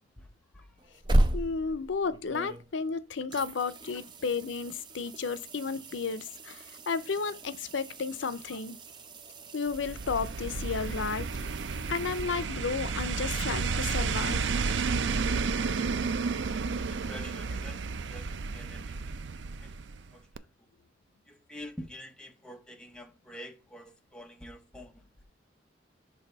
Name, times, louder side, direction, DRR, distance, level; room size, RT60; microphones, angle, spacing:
sound 1, 0.8-2.9 3.3-12.9 15.7-15.8, right 1 dB, 25° right, 0.6 m, -35 dB
voice 1, 1.3-8.8 9.5-11.3 11.9-14.6, left 5 dB, 80° left, 0.6 m, -33 dB
sound 2, 9.7-20.1 20.4-20.5, right 4 dB, 75° right, 0.5 m, -32 dB
voice 2, 16.9-17.8 18.1-19.0 19.6-19.7 20.1-20.7 21.3-25.1, equal, 5° left, 0.8 m, -47 dB
6.3 x 3.4 x 5.3 m
head